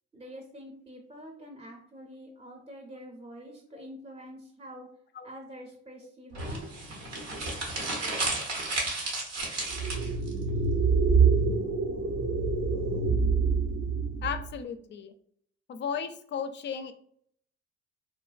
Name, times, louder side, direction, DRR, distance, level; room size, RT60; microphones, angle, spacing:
voice 1, 0.1-4.9 5.2-6.7, equal, 20° right, 1 dB, 0.6 m, -46 dB
voice 2, 3.4-3.9 5.1-5.3 14.2-15.1 15.7-16.9, left 7 dB, 40° left, 9 dB, 0.4 m, -35 dB
sound 1, 6.3-10.3, right 2 dB, 85° right, 1.0 m, -33 dB
sound 2, 9.7-14.5, right 5 dB, 60° right, 0.7 m, -26 dB
3.0 x 2.1 x 2.4 m, 0.66 s
supercardioid pair, 70°, 30 cm